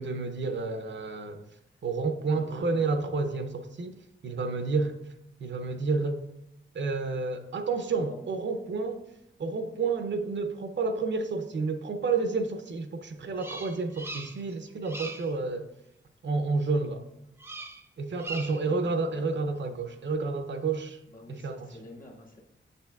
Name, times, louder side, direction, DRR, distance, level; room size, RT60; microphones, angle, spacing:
voice 1, 0.0-1.4 1.8-3.9 4.2-4.9 5.4-6.2 6.7-9.0 9.4-15.7 16.2-17.0 18.0-21.0 21.3-21.7, right 4 dB, 65° right, 7 dB, 0.6 m, -30 dB
voice 2, 2.3-2.9 7.9-8.2 18.6-19.4 21.1-22.4, left 1 dB, 40° left, 0 dB, 1.0 m, -49 dB
Bird vocalization bird call bird song, 13.4-14.5 14.8-15.3 17.4-17.8 18.1-18.7, right 2 dB, 10° right, 0.4 m, -40 dB
7.6 x 6.7 x 2.3 m, 0.85 s
wide cardioid pair, 165°, 20 cm